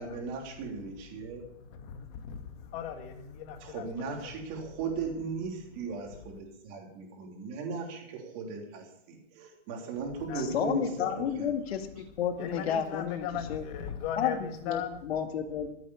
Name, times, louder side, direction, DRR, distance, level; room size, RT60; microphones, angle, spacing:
voice 1, 0.0-1.5 3.6-10.9 11.2-11.5, right 4 dB, 35° right, 1 dB, 3.4 m, -37 dB
voice 2, 1.7-4.3 10.3-10.5 11.0-11.2 12.4-15.0, left 8 dB, 30° left, 6 dB, 1.9 m, -38 dB
voice 3, 10.4-13.6 14.2-15.7, left 8 dB, 60° left, 6 dB, 2.1 m, -32 dB
15.0 x 8.4 x 7.1 m, 0.76 s
hypercardioid pair, 160°, 34 cm